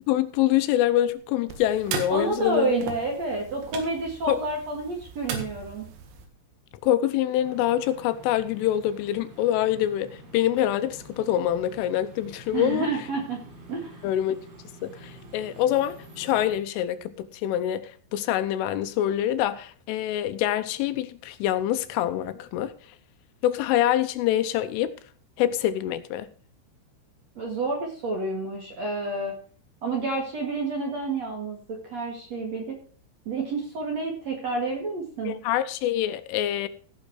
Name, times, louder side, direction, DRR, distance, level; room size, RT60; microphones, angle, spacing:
voice 1, 0.1-2.7 4.3-4.4 6.8-12.9 14.0-14.4 14.8-22.7 23.4-24.9 25.4-26.3 35.2-36.7, left 12 dB, 85° left, 3.2 m, -25 dB
sound 1, 1.5-6.3, right 7 dB, 85° right, 4.4 m, -38 dB
voice 2, 2.1-5.8 12.5-13.4 13.7-14.0 27.4-29.3 29.8-32.8 33.3-35.4, right 3 dB, 50° right, 2.2 m, -29 dB
sound 2, 7.4-16.6, right 1 dB, 70° right, 6.0 m, -48 dB
16.5 x 6.4 x 4.8 m
omnidirectional pair, 5.7 m